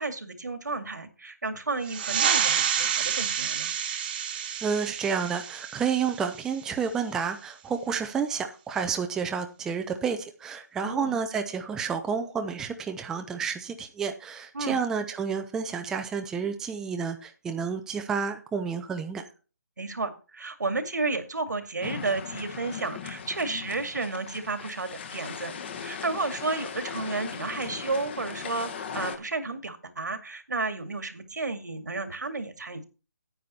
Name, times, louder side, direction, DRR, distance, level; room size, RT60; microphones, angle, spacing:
voice 1, 0.0-3.7 10.8-11.2 14.5-14.8 19.8-25.5 25.8-32.8, right 3 dB, 80° right, 9 dB, 2.3 m, -32 dB
sound 1, 1.8-7.0, right 8 dB, 30° right, 1.4 m, -29 dB
voice 2, 4.6-19.3, right 6 dB, 5° right, 6 dB, 0.6 m, -30 dB
sound 2, 21.8-29.2, left 7 dB, 40° left, 1.6 m, -38 dB
9.5 x 9.4 x 4.3 m, 0.33 s
figure-of-eight pair, 155°, 9 cm